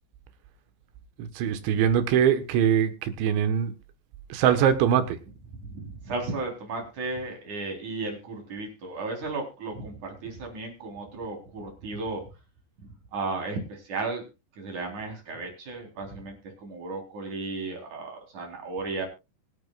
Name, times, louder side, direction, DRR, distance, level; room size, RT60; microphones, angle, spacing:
voice 1, 1.2-3.7 4.3-5.2, right 8 dB, 85° right, 10 dB, 3.6 m, -22 dB
voice 2, 5.5-12.2 12.8-14.3 14.6-19.1, right 3 dB, 45° right, 2 dB, 4.9 m, -35 dB
24.0 x 8.5 x 2.4 m, 0.27 s
omnidirectional pair, 5.1 m